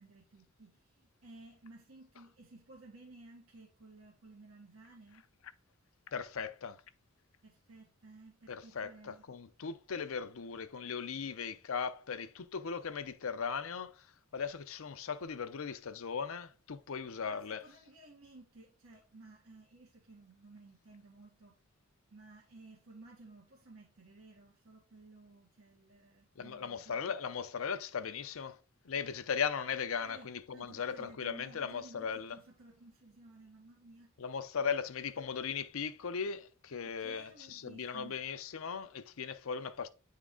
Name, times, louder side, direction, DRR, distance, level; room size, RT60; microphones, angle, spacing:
voice 1, 0.0-5.2 7.4-9.2 17.3-21.6 22.1-27.2 30.0-34.1 36.8-38.2, right 2 dB, 85° right, 1.4 m, -56 dB
voice 2, 6.1-6.8 8.5-14.0 14.3-17.6 26.4-28.6 28.8-32.4 34.2-39.9, left 6 dB, 70° left, 0.6 m, -38 dB
9.0 x 3.7 x 3.6 m
head